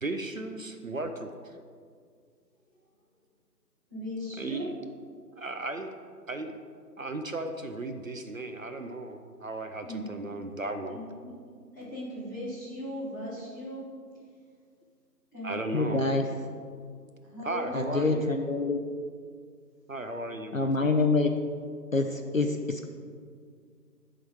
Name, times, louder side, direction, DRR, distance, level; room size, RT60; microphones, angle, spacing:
voice 1, 0.0-1.6 4.4-4.7 5.3-6.0 6.3-6.6 7.0-11.0 15.4-16.1 17.4-18.3 19.9-20.9, right 2 dB, 55° right, 7 dB, 0.5 m, -35 dB
voice 2, 3.9-4.7 9.8-10.1 10.9-11.3 11.7-13.9 15.3-16.1 17.2-18.0, left 1 dB, 10° left, -12 dB, 1.2 m, -38 dB
voice 3, 15.7-16.3 17.7-18.8 20.5-21.3 21.9-22.9, left 3 dB, 55° left, 5 dB, 0.5 m, -26 dB
10.5 x 3.9 x 4.6 m, 2.1 s
figure-of-eight pair, 165°, 50 cm